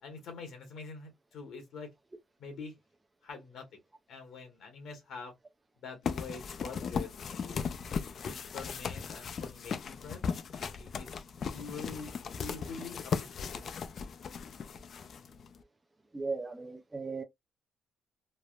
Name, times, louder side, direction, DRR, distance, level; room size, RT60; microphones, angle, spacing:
voice 1, 0.0-1.9 2.4-2.7 3.2-3.7 4.1-5.3 5.8-7.7 8.3-10.2 10.5-13.6, left 4 dB, 75° left, 1.0 m, -45 dB
sound 1, 6.0-15.6, left 6 dB, 55° left, 0.3 m, -37 dB
voice 2, 16.1-17.2, right 4 dB, 15° right, 0.4 m, -37 dB
3.2 x 2.0 x 2.3 m
cardioid pair, 90°, 0 cm